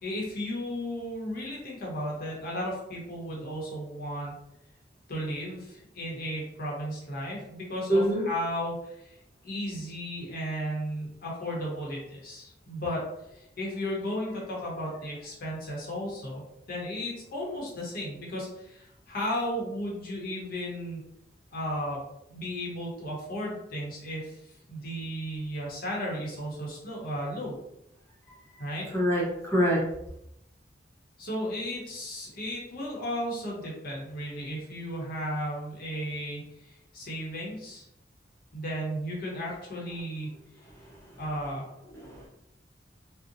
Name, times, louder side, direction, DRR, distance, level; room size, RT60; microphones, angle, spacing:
voice 1, 0.0-4.3 5.1-9.2 9.4-21.0 21.5-22.0 22.3-24.4 24.7-27.6 28.6-28.9 31.2-37.8 38.5-40.4 41.2-41.7, equal, 55° left, -3 dB, 0.8 m, -34 dB
voice 2, 7.9-8.2 28.5-29.8 41.9-42.3, equal, 15° left, -4 dB, 0.7 m, -26 dB
2.7 x 2.0 x 2.5 m, 0.81 s
head